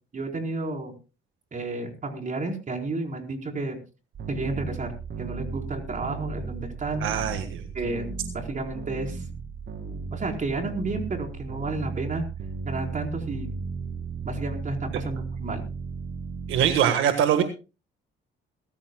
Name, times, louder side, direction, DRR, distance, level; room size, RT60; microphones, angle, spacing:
voice 1, 0.1-0.9 1.5-3.8 4.3-4.9 5.2-7.1 7.7-8.1 8.3-9.2 10.1-12.2 12.7-13.5 14.2-15.6, right 2 dB, 40° right, 3 dB, 4.5 m, -31 dB
sound 1, 4.1-16.8, right 5 dB, 65° right, 2.6 m, -35 dB
voice 2, 7.0-7.6 16.5-17.4, right 9 dB, 90° right, 7 dB, 1.6 m, -22 dB
22.0 x 14.0 x 2.3 m, 0.32 s
cardioid pair, 90°, 20 cm